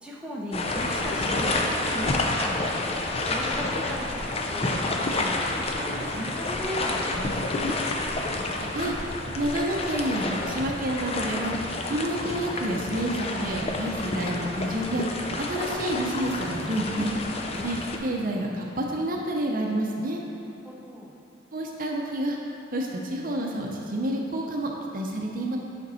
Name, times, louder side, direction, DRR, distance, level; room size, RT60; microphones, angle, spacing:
voice 1, 0.0-2.6 3.3-4.6 4.9-7.8 20.6-21.1, equal, 5° right, -4 dB, 0.8 m, -36 dB
sound 1, 0.5-18.0, left 2 dB, 35° left, 0.5 m, -29 dB
voice 2, 8.6-9.0 9.3-11.6 11.9-15.1 15.4-17.1 17.6-20.2 21.5-22.4 22.7-25.6, right 1 dB, 50° right, 0 dB, 0.7 m, -29 dB
8.8 x 5.2 x 4.2 m, 2.9 s
head